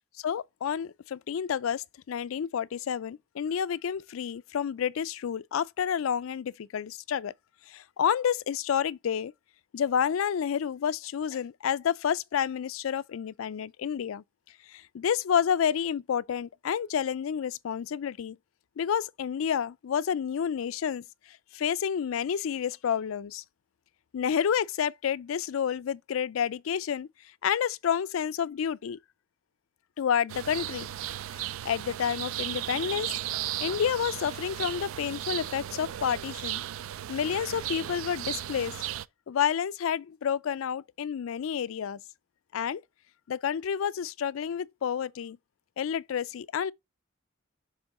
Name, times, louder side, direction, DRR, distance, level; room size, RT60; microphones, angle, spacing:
voice 1, 0.2-7.3 7.7-9.3 9.7-14.2 14.7-18.4 18.8-21.0 21.5-23.4 24.1-27.1 27.4-29.0 30.0-30.9 31.6-33.1 33.6-36.6 37.1-38.9 39.3-42.0 42.5-42.8 43.3-45.4 45.8-46.7, left 8 dB, 85° left, 0.4 m, -29 dB
sound 1, 30.3-39.1, right 12 dB, 85° right, 0.4 m, -35 dB
6.9 x 3.7 x 5.4 m
head